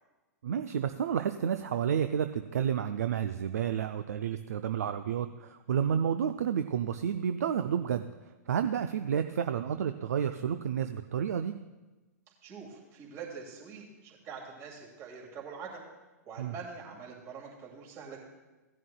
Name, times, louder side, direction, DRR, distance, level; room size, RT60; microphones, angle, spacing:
voice 1, 0.4-8.1 8.5-11.5 16.4-16.5, right 8 dB, 65° right, 9 dB, 0.4 m, -30 dB
voice 2, 12.4-15.8 16.3-18.2, right 5 dB, 35° right, -1 dB, 2.4 m, -44 dB
17.0 x 10.5 x 2.3 m, 1.1 s
figure-of-eight pair, 105°, 9 cm